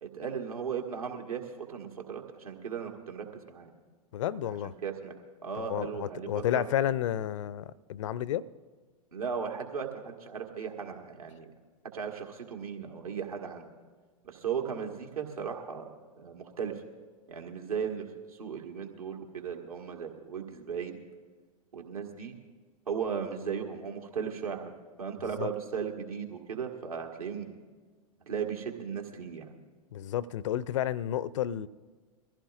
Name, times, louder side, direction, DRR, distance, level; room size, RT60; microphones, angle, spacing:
voice 1, 0.0-3.7 4.1-5.1 5.4-6.7 9.1-11.5 11.9-13.6 14.2-15.9 16.1-16.8 17.3-21.0 21.7-22.4 22.9-27.5 28.3-29.5, right 7 dB, 70° right, 1.6 m, -36 dB
voice 2, 4.1-4.7 5.7-8.4 25.4-25.5 29.9-31.7, left 11 dB, 55° left, 0.5 m, -31 dB
22.5 x 15.0 x 2.4 m
figure-of-eight pair, 95°, 19 cm